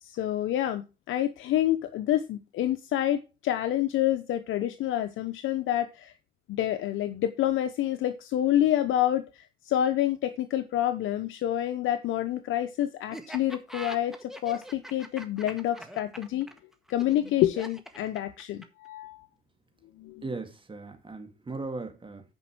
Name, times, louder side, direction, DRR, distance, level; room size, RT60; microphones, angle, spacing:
voice 1, 0.0-6.1 6.5-16.5 16.9-19.2 20.0-20.2, left 12 dB, 85° left, 0.9 m, -28 dB
Laughter, 13.1-18.9, right 1 dB, ahead, 1.7 m, -43 dB
voice 2, 20.2-22.2, right 3 dB, 25° right, 2.0 m, -37 dB
9.7 x 5.4 x 6.0 m
cardioid pair, 90°, 20 cm